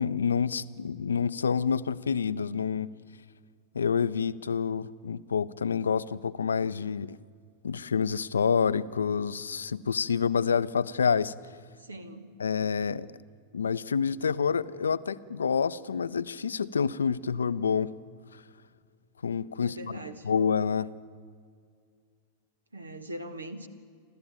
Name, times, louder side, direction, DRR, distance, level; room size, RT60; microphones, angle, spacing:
voice 1, 0.0-2.9 3.7-7.2 7.6-11.3 12.4-13.1 13.5-17.9 19.2-19.8 20.2-20.9, left 6 dB, 70° left, 16 dB, 0.6 m, -28 dB
voice 2, 11.8-12.4 19.6-20.3 22.7-23.7, right 1 dB, 75° right, 11 dB, 1.6 m, -41 dB
29.0 x 13.0 x 9.0 m, 2.1 s
figure-of-eight pair, 90°, 0 cm